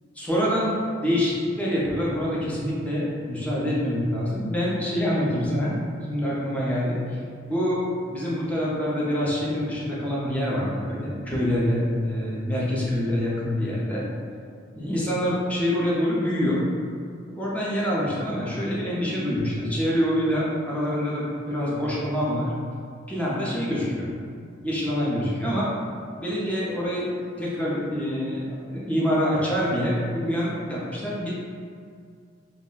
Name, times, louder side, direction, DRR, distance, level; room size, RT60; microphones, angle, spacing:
voice 1, 0.2-5.8 6.0-7.0 7.5-14.1 14.8-16.6 17.3-22.5 23.1-24.1 24.6-25.7 26.2-27.1 27.4-31.4, equal, 5° left, -7 dB, 0.5 m, -26 dB
2.4 x 2.1 x 3.7 m, 2.2 s
head